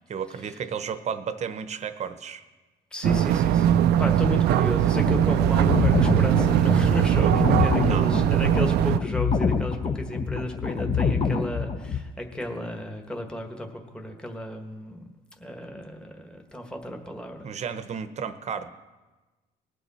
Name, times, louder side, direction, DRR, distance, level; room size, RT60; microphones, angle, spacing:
voice 1, 0.1-2.4 7.8-8.1 17.4-18.7, right 7 dB, 40° right, 11 dB, 0.8 m, -33 dB
voice 2, 2.9-15.1 15.4-17.5, left 1 dB, 5° left, 2 dB, 1.4 m, -33 dB
sound 1, 3.0-9.0, right 11 dB, 75° right, 0.4 m, -21 dB
sound 2, 4.8-12.0, left 5 dB, 35° left, 0.8 m, -26 dB
19.5 x 7.0 x 4.3 m, 1.2 s
cardioid pair, 110°, 17 cm